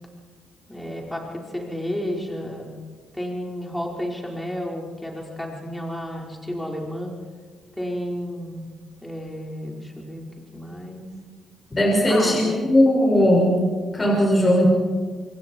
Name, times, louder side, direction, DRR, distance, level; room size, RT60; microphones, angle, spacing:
voice 1, 0.7-2.7 3.1-7.1 7.8-8.6 9.0-10.3 10.5-11.1 12.1-12.6, equal, 5° left, -1 dB, 5.2 m, -31 dB
voice 2, 11.7-13.5 13.9-14.7, left 1 dB, 25° left, -2 dB, 6.5 m, -18 dB
27.0 x 22.0 x 4.8 m, 1.5 s
cardioid pair, 90°, 0 cm